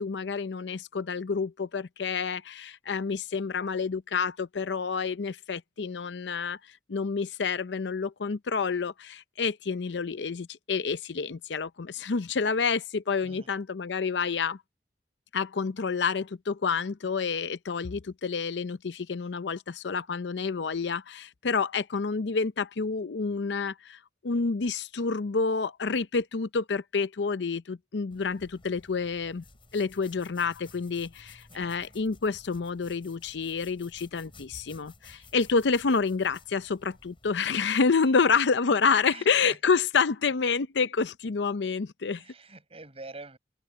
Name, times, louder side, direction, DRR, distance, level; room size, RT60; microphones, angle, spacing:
voice 1, 0.0-6.6 6.9-14.6 15.3-29.4 29.7-42.2, left 5 dB, 85° left, 0.6 m, -28 dB
sound 1, 28.1-37.4, left 3 dB, 30° left, 5.4 m, -54 dB
voice 2, 31.5-32.0 35.2-35.3 38.1-38.2 39.1-39.6 42.2-43.4, right 2 dB, 35° right, 6.2 m, -47 dB
open air
head